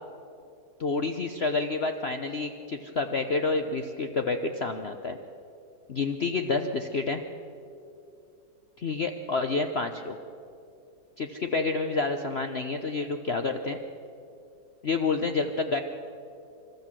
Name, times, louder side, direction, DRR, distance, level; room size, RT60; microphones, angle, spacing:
voice 1, 0.8-5.2 5.9-7.2 8.8-10.2 11.2-13.8 14.8-15.8, left 3 dB, 45° left, 6 dB, 0.9 m, -29 dB
27.0 x 13.0 x 7.6 m, 2.6 s
omnidirectional pair, 1.8 m